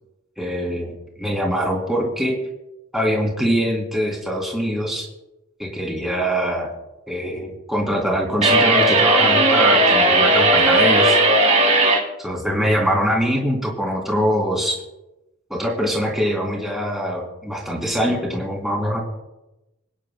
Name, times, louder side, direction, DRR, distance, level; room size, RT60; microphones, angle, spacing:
voice 1, 0.4-0.9 1.2-2.3 2.9-5.1 5.6-6.7 7.1-11.2 12.2-14.7 15.5-19.0, equal, ahead, -2 dB, 3.0 m, -23 dB
sound 1, 8.4-12.0, right 2 dB, 35° right, 2.5 m, -16 dB
26.5 x 10.0 x 2.2 m, 0.97 s
head